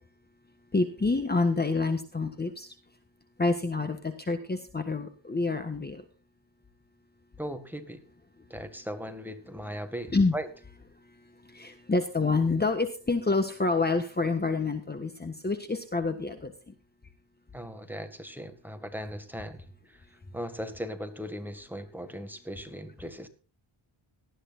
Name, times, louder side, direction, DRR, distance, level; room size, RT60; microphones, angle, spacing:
voice 1, 0.7-2.7 3.4-6.0 10.1-10.3 11.5-16.7, left 3 dB, 20° left, 7 dB, 1.4 m, -28 dB
voice 2, 7.4-8.0 8.5-10.5 17.5-23.3, equal, 5° right, 7 dB, 1.9 m, -38 dB
18.5 x 13.0 x 2.5 m, 0.36 s
wide cardioid pair, 125°, 48 cm